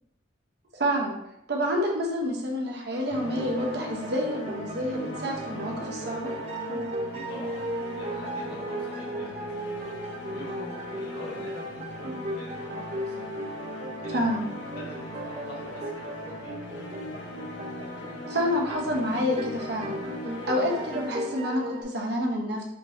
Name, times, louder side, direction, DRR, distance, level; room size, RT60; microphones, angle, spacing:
voice 1, 0.7-1.1 1.5-6.3 14.1-14.5 18.3-20.0 20.4-22.6, equal, 60° right, 0 dB, 0.8 m, -28 dB
sound 1, 2.9-21.8, right 1 dB, 35° right, 0.4 m, -36 dB
sound 2, 3.1-22.0, left 1 dB, 85° left, 0.6 m, -40 dB
voice 2, 7.1-9.6 10.3-13.3 14.0-14.2 14.7-16.6 20.4-20.6, equal, 60° left, -5 dB, 1.5 m, -44 dB
4.5 x 3.0 x 2.6 m, 0.83 s
head